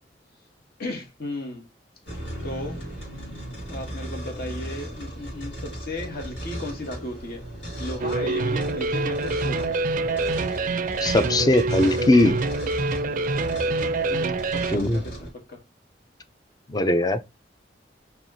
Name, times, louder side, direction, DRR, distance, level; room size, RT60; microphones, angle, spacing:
voice 1, 0.8-1.6 2.4-2.8 3.7-7.4 7.8-9.7 14.1-15.6, left 1 dB, 60° left, 1.2 m, -35 dB
sound 1, 2.0-15.3, right 1 dB, 85° left, 2.0 m, -36 dB
sound 2, 8.0-14.8, right 3 dB, 50° right, 0.4 m, -26 dB
voice 2, 11.0-12.3 14.7-15.0 16.7-17.2, left 1 dB, 20° left, 0.5 m, -20 dB
4.5 x 2.9 x 2.7 m
head